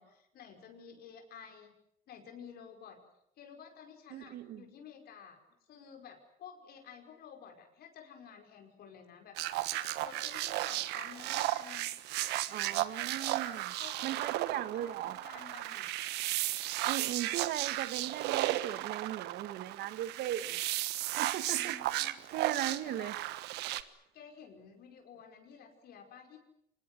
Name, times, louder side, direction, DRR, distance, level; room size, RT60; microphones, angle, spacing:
voice 1, 0.0-1.7 2.1-3.0 3.4-5.4 5.7-9.7 10.0-12.1 13.4-15.9 21.5-22.2 22.6-23.1 24.1-26.4, left 7 dB, 65° left, 5.3 m, -52 dB
voice 2, 4.1-4.7 12.5-13.7 14.0-15.2 16.9-20.6 21.2-21.8 22.3-23.1, right 12 dB, 70° right, 1.3 m, -38 dB
sound 1, 9.4-23.8, right 15 dB, 90° right, 1.4 m, -35 dB
25.5 x 20.0 x 9.5 m
cardioid pair, 110°, 17 cm